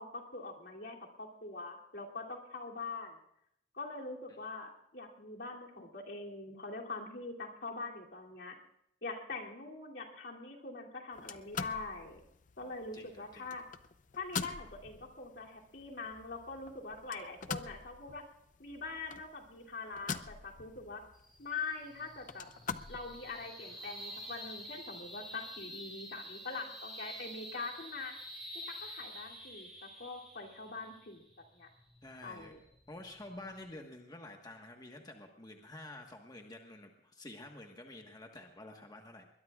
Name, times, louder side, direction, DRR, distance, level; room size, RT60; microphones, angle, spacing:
voice 1, 0.0-3.2 3.7-8.6 9.0-12.2 12.6-13.6 14.2-18.2 18.6-21.0 21.4-22.5 22.9-28.2 28.5-31.2 31.5-31.7 32.2-32.6, left 3 dB, 70° left, -1 dB, 2.9 m, -43 dB
sound 1, 11.1-23.5, left 5 dB, 45° left, 0.6 m, -45 dB
voice 2, 12.9-13.5 32.0-32.5 32.9-39.3, left 1 dB, 25° left, 2 dB, 1.4 m, -49 dB
sound 2, 21.1-33.8, equal, ahead, 7.9 m, -49 dB
22.0 x 21.0 x 2.4 m, 0.76 s
head